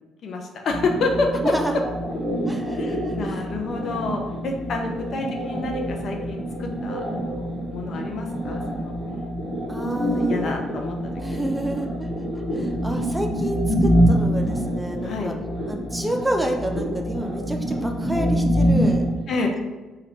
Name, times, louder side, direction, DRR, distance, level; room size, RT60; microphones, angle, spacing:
voice 1, 0.2-1.5 2.8-7.4 7.7-8.9 10.2-11.0 11.3-11.4 15.0-15.4 19.3-19.5, left 3 dB, 60° left, 2 dB, 0.6 m, -28 dB
sound 1, 0.7-19.1, equal, 25° left, 1.4 m, -26 dB
voice 2, 2.5-3.5 9.7-10.5 11.2-12.3 12.5-15.3 15.7-19.1, right 1 dB, 10° right, 2 dB, 0.6 m, -29 dB
3.1 x 2.4 x 4.4 m, 1.2 s
hypercardioid pair, 50°, 0 cm